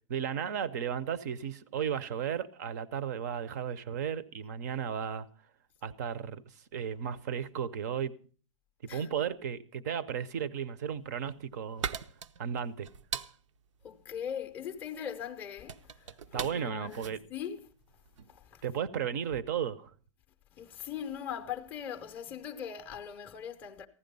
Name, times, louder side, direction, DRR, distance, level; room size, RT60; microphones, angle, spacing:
voice 1, 0.1-5.3 5.8-8.1 8.9-11.9 12.4-12.9 16.3-17.2 18.6-19.9, right 8 dB, 35° right, 0.6 m, -34 dB
sound 1, 10.9-18.4, right 7 dB, 75° right, 0.7 m, -42 dB
voice 2, 13.8-17.6 18.3-18.6 20.5-23.9, left 8 dB, 10° left, 0.6 m, -40 dB
15.5 x 11.0 x 5.3 m
hypercardioid pair, 175°, 16 cm